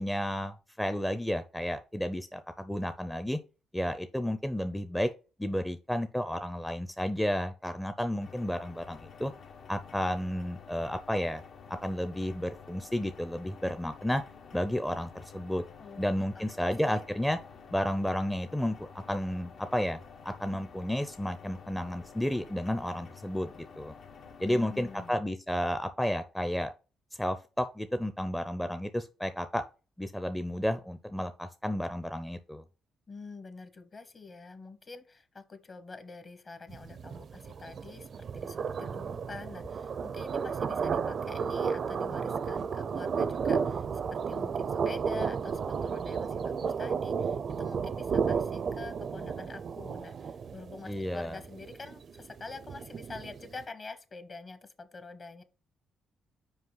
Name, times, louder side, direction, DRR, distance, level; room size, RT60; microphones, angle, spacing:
voice 1, 0.0-3.4 3.7-5.1 5.4-9.3 9.7-11.4 11.7-14.2 14.5-15.6 16.0-17.4 17.7-23.9 24.4-26.7 27.2-29.6 30.0-32.6 50.8-51.4, equal, 5° left, 9 dB, 0.5 m, -32 dB
sound 1, 8.2-25.1, left 6 dB, 65° left, 0.9 m, -51 dB
voice 2, 15.8-17.1 24.4-25.2 33.1-55.4, left 4 dB, 35° left, 11 dB, 1.0 m, -46 dB
sound 2, 36.7-53.6, right 6 dB, 55° right, 0.5 m, -33 dB
5.5 x 4.8 x 3.9 m, 0.33 s
cardioid pair, 90°, 0 cm